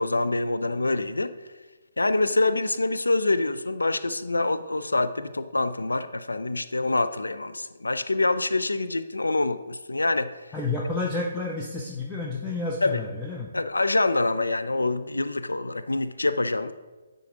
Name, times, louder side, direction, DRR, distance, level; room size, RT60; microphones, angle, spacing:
voice 1, 0.0-1.3 2.0-10.3 12.8-13.0 13.5-16.7, left 2 dB, 75° left, 12 dB, 0.4 m, -25 dB
voice 2, 10.5-13.5, left 3 dB, 5° left, -4 dB, 0.7 m, -30 dB
9.9 x 3.9 x 3.7 m, 1.3 s
figure-of-eight pair, 135°, 0 cm